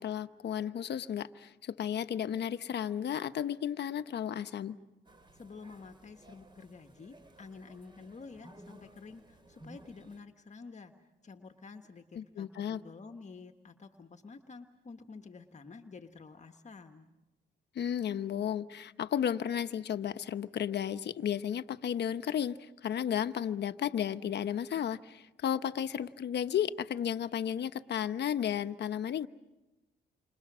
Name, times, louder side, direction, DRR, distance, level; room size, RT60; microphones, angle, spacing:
voice 1, 0.0-4.7 12.2-12.8 17.7-29.3, left 9 dB, 60° left, 1.1 m, -33 dB
sound 1, 5.0-10.2, right 1 dB, 25° right, 3.4 m, -56 dB
voice 2, 5.3-17.1, left 4 dB, 35° left, 1.5 m, -50 dB
29.0 x 25.5 x 6.3 m
cardioid pair, 90°, 20 cm